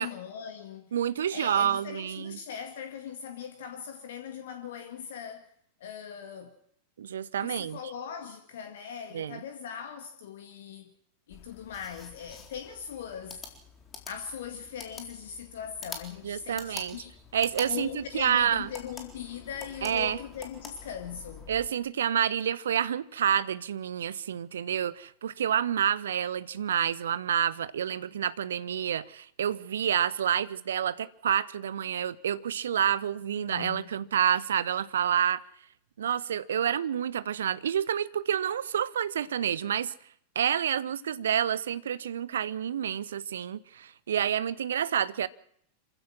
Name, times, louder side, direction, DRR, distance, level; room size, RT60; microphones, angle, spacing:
voice 1, 0.0-0.9 1.3-5.5 5.8-6.5 7.4-10.9 11.3-13.4 14.1-17.2 17.7-21.5 33.4-33.9, left 8 dB, 60° left, 1.8 m, -40 dB
voice 2, 0.9-2.4 7.0-7.8 9.1-9.4 16.2-17.0 17.3-18.7 19.8-20.2 21.5-35.4 36.0-39.9 40.3-45.3, right 9 dB, 65° right, 0.8 m, -28 dB
sound 1, 11.3-21.7, left 5 dB, 20° left, 4.1 m, -47 dB
27.0 x 15.5 x 6.2 m
figure-of-eight pair, 90°, 0 cm